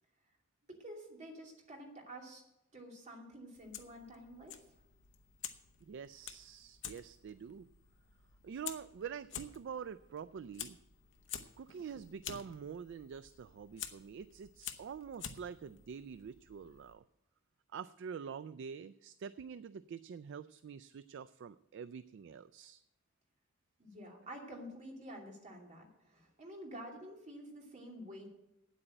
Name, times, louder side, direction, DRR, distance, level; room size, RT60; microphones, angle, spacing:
voice 1, 0.7-2.4 2.7-4.6 23.8-28.3, equal, 35° right, 0 dB, 2.7 m, -49 dB
Fire, 3.5-16.9, left 9 dB, 65° left, 0.9 m, -50 dB
voice 2, 5.8-7.7 8.4-10.8 11.6-17.0 17.7-22.8, right 7 dB, 60° right, 15 dB, 0.3 m, -46 dB
8.9 x 8.2 x 8.9 m, 0.89 s
head